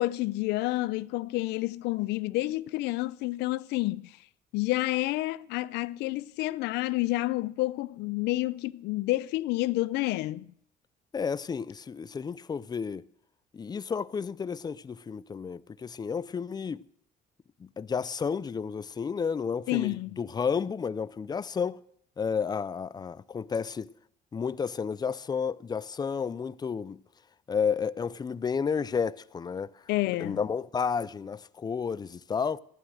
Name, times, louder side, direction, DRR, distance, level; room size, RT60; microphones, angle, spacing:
voice 1, 0.0-4.2 4.5-10.5 19.7-20.2 29.9-30.4, left 18 dB, 85° left, 0.5 m, -29 dB
voice 2, 11.1-13.0 13.5-16.8 17.6-21.8 22.2-23.9 24.3-27.0 27.5-29.8 30.2-32.6, left 6 dB, 25° left, 0.5 m, -31 dB
15.0 x 11.0 x 6.3 m
cardioid pair, 110°, 17 cm